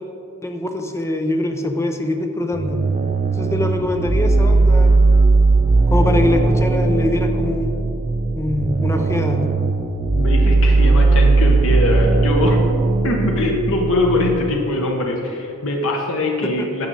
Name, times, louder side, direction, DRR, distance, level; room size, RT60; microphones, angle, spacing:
voice 1, 0.4-2.8 3.4-4.9 5.9-7.7 8.3-9.4 16.4-16.7, left 1 dB, 10° left, 5 dB, 0.7 m, -23 dB
sound 1, 2.5-14.5, right 3 dB, 30° right, 0.4 m, -17 dB
voice 2, 10.1-12.6 13.0-16.9, left 2 dB, 65° left, 0 dB, 1.1 m, -22 dB
12.5 x 6.7 x 4.1 m, 2.7 s
head